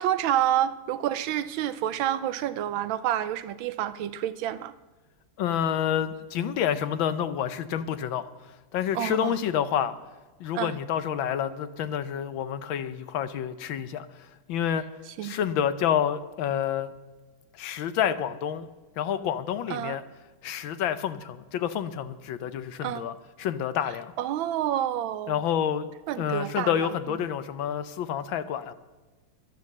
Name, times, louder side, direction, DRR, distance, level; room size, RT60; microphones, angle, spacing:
voice 1, 0.0-4.7 8.9-9.3 10.5-10.7 15.2-15.3 19.7-20.0 22.8-23.0 24.2-25.4 26.1-26.9, right 11 dB, 75° right, 14 dB, 1.3 m, -28 dB
voice 2, 5.4-8.3 8.7-10.0 10.4-14.1 14.5-14.8 15.2-16.9 17.5-18.7 19.0-20.0 20.4-24.1 25.3-25.9 26.2-28.7, left 9 dB, 70° left, 12 dB, 1.4 m, -28 dB
11.5 x 9.4 x 7.4 m, 1.2 s
omnidirectional pair, 2.3 m